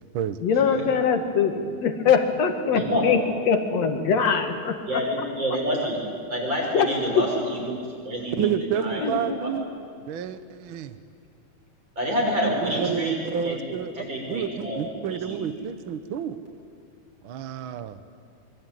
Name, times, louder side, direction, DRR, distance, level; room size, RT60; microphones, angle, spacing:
voice 1, 0.4-3.2 3.5-5.3 6.7-7.2 9.0-9.4, left 6 dB, 60° left, 6 dB, 2.9 m, -23 dB
voice 2, 2.7-3.1 4.9-6.0 6.3-8.5 8.8-9.5 12.0-13.2 13.4-13.6 14.0-15.4, equal, 35° right, -1 dB, 7.0 m, -28 dB
voice 3, 8.4-9.7 10.1-11.0 12.6-16.4 17.2-18.0, right 8 dB, 60° right, 10 dB, 1.4 m, -30 dB
25.0 x 24.0 x 9.3 m, 2.2 s
omnidirectional pair, 3.5 m